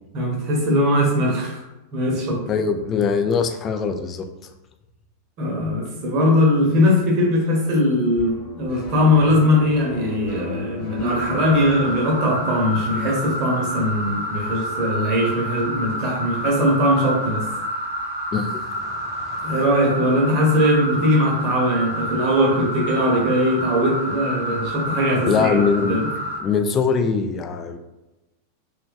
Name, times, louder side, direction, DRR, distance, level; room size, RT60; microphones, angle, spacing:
voice 1, 0.1-1.6 1.9-2.4 5.4-17.4 19.4-25.6 25.9-26.1, left 1 dB, 40° right, -1 dB, 1.0 m, -20 dB
voice 2, 2.5-4.2 18.3-19.5 25.3-26.0 26.4-27.8, left 5 dB, 25° left, 7 dB, 0.4 m, -22 dB
sound 1, 8.2-12.0, left 2 dB, 45° left, 1.1 m, -35 dB
sound 2, 11.1-26.4, equal, 70° right, 0.8 m, -29 dB
3.2 x 3.0 x 2.5 m, 1.0 s
figure-of-eight pair, 90°, 0 cm